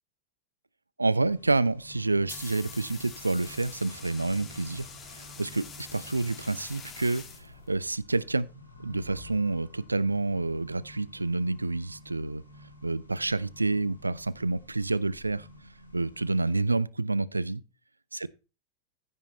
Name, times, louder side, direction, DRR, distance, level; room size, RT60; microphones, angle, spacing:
voice 1, 1.0-8.5 8.8-12.4 12.8-15.5 15.9-17.6 18.1-18.3, right 3 dB, 80° right, 0.5 m, -28 dB
Accelerating revving vroom, 1.2-16.6, equal, 85° left, 2.6 m, -51 dB
sound 1, 2.0-8.0, left 5 dB, 20° left, 1.7 m, -46 dB
15.0 x 5.6 x 4.2 m
figure-of-eight pair, 90°, 0 cm